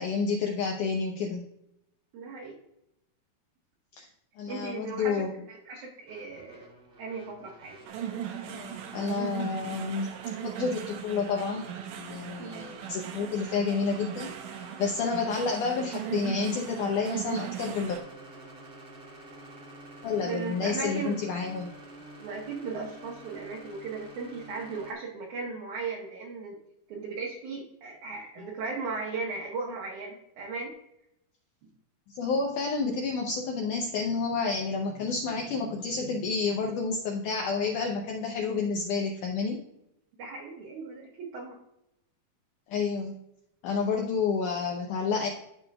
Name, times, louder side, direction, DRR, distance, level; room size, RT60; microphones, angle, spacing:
voice 1, 0.0-1.5 4.0-4.1 4.4-5.3 8.5-10.1 10.4-11.7 12.0-14.3 14.8-18.0 20.0-21.7 32.1-39.6 42.7-43.2 43.6-45.3, left 4 dB, 75° left, 0 dB, 1.9 m, -30 dB
voice 2, 2.1-2.6 4.5-6.7 7.0-7.7 12.4-12.7 20.2-21.2 22.2-26.6 26.9-30.7 31.6-31.7 40.2-41.6, right 4 dB, 65° right, -3 dB, 2.3 m, -37 dB
sound 1, 6.1-24.9, right 1 dB, 25° right, 1.5 m, -49 dB
sound 2, 7.9-18.0, right 9 dB, 90° right, 1.6 m, -38 dB
12.5 x 4.8 x 2.3 m, 0.81 s
omnidirectional pair, 4.5 m